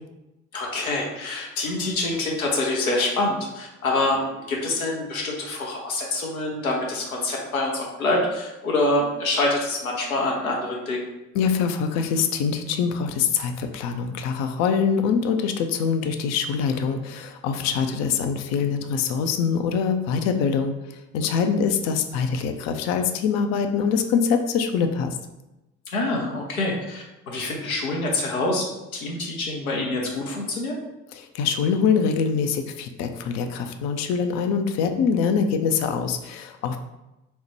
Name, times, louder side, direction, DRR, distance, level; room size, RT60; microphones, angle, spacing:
voice 1, 0.5-11.1 17.8-18.0 25.9-28.7 28.9-30.7, left 2 dB, 85° left, -1 dB, 0.7 m, -26 dB
voice 2, 11.3-20.7 21.1-25.2 31.1-36.8, left 6 dB, 40° left, 7 dB, 0.4 m, -24 dB
4.2 x 2.1 x 2.9 m, 0.97 s
figure-of-eight pair, 55°, 42 cm